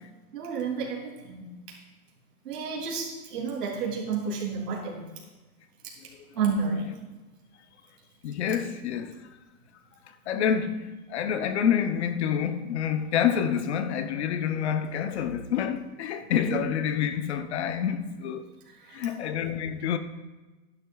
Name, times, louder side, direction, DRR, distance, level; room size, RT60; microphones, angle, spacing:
voice 1, 0.3-1.5 2.4-5.0 6.3-7.0 16.5-16.6 18.7-19.1, right 5 dB, 90° right, 2.9 m, -31 dB
voice 2, 8.2-9.3 10.1-18.5 18.9-20.0, left 8 dB, 50° left, 0.7 m, -28 dB
13.0 x 10.5 x 2.3 m
supercardioid pair, 170°, 45 cm